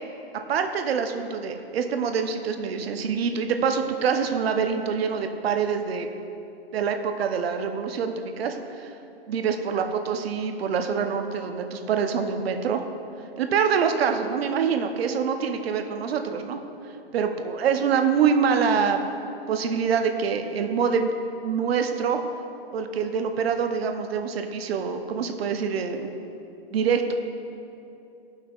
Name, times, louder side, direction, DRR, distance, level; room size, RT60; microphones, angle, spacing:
voice 1, 0.5-6.1 6.7-8.9 9.3-12.8 13.4-16.6 17.1-19.0 19.5-21.1 21.4-22.2 22.7-26.1 26.7-27.1, right 6 dB, 70° right, 6 dB, 0.7 m, -25 dB
14.0 x 5.6 x 2.4 m, 2.8 s
hypercardioid pair, 150°, 31 cm